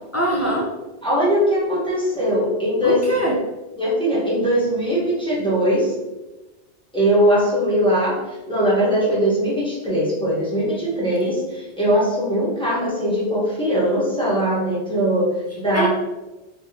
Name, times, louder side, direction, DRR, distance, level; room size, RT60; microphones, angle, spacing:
voice 1, 0.1-0.7 2.8-3.4 15.7-15.9, right 1 dB, 25° left, -4 dB, 0.4 m, -21 dB
voice 2, 1.0-3.0 3.8-5.9 6.9-15.9, equal, 5° left, -8 dB, 1.2 m, -20 dB
3.5 x 3.2 x 2.9 m, 1.1 s
omnidirectional pair, 1.2 m